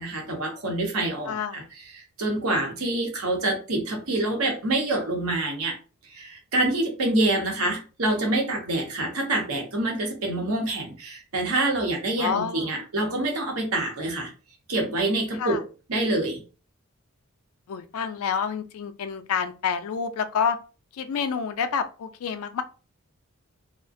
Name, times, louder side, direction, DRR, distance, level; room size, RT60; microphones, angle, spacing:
voice 1, 0.0-5.8 6.0-14.3 14.7-15.6 15.9-16.4, right 2 dB, 75° right, 1 dB, 0.8 m, -26 dB
voice 2, 1.3-1.7 12.2-12.7 15.4-15.6 17.7-20.6 20.9-22.6, left 6 dB, 75° left, 9 dB, 0.3 m, -28 dB
2.4 x 2.1 x 2.5 m, 0.35 s
head